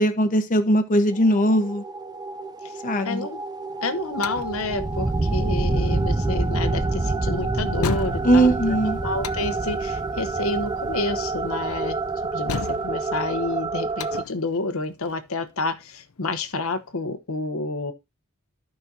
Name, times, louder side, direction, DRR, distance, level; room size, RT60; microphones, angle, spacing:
voice 1, 0.0-1.8 2.8-3.3 8.2-9.0, right 1 dB, 40° left, 1.1 m, -20 dB
sound 1, 1.1-14.2, right 3 dB, 20° right, 0.5 m, -27 dB
voice 2, 3.0-3.4 3.8-8.5 9.0-12.0 12.3-17.9, left 3 dB, 70° left, 1.0 m, -29 dB
sound 2, 3.7-16.9, left 5 dB, 90° left, 0.6 m, -37 dB
14.5 x 5.4 x 2.7 m
head